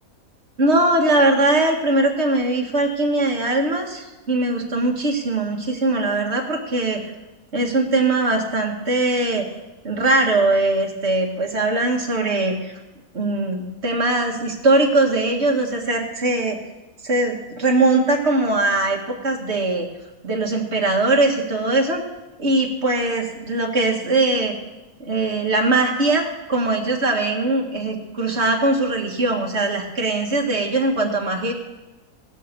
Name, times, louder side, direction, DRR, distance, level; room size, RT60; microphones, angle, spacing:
voice 1, 0.6-7.1 7.5-9.5 9.8-12.7 13.1-16.6 17.0-19.9 20.2-22.0 22.4-24.5 25.0-31.5, right 2 dB, 50° right, 1 dB, 2.0 m, -21 dB
16.5 x 7.6 x 6.8 m, 1.1 s
omnidirectional pair, 1.5 m